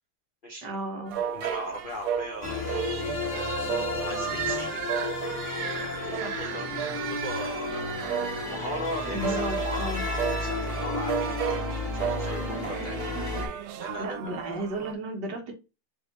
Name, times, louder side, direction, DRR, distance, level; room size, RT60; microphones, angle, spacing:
voice 1, 0.6-1.2 1.8-2.0 6.1-6.4 9.0-10.1 14.0-15.5, right 1 dB, 60° right, 2 dB, 1.5 m, -34 dB
sound 1, 1.1-14.9, right 8 dB, 90° right, 1.5 m, -34 dB
voice 2, 1.3-2.7 3.3-4.8 5.6-8.0 8.5-13.0 13.8-14.4, equal, 60° left, 0 dB, 0.5 m, -38 dB
sound 2, 2.4-13.5, left 3 dB, 10° right, 1.7 m, -33 dB
sound 3, 2.9-5.4, right 5 dB, 35° right, 1.1 m, -42 dB
3.7 x 3.3 x 3.9 m, 0.28 s
omnidirectional pair, 2.3 m